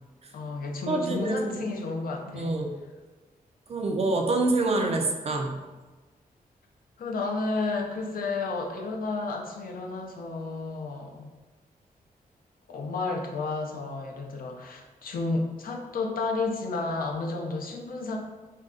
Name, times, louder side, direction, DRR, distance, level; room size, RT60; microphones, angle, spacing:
voice 1, 0.3-2.6 7.0-11.3 12.7-18.2, left 3 dB, 70° left, 1 dB, 0.5 m, -32 dB
voice 2, 0.9-1.6 2.3-2.8 3.7-5.6, right 2 dB, 45° right, 2 dB, 0.4 m, -26 dB
2.6 x 2.3 x 3.5 m, 1.2 s
wide cardioid pair, 115°, 15 cm